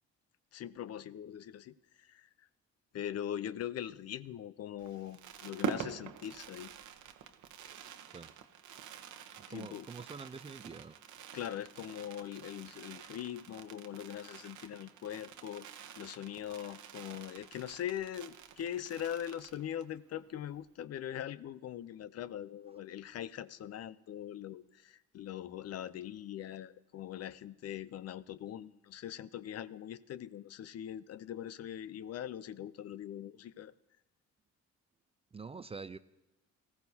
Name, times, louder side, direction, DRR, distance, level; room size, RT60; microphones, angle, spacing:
voice 1, 0.5-2.5 2.9-6.7 9.5-9.9 11.3-33.7, left 10 dB, 55° left, 17 dB, 0.5 m, -42 dB
Fireworks, 4.8-20.0 20.3-20.4 20.6-20.8, right 8 dB, 75° right, 0.9 m, -46 dB
voice 2, 9.4-11.0 35.3-36.0, right 4 dB, 20° right, 14 dB, 0.4 m, -46 dB
19.0 x 15.0 x 2.7 m, 1.0 s
cardioid pair, 90°, 30 cm